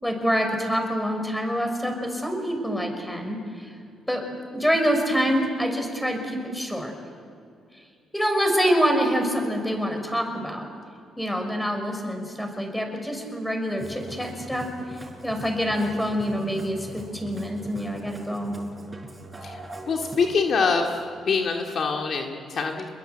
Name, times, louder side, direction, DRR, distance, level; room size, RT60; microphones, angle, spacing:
voice 1, 0.0-3.7 4.1-4.3 4.5-6.9 8.1-10.7 11.2-14.7 15.2-18.6, equal, 5° left, 4 dB, 5.8 m, -26 dB
Musical instrument, 13.7-20.3, right 1 dB, 20° right, 5.6 m, -41 dB
voice 2, 19.4-21.0 21.3-22.9, left 5 dB, 55° left, 2 dB, 2.2 m, -25 dB
28.0 x 21.5 x 8.0 m, 2.4 s
cardioid pair, 90°, 0 cm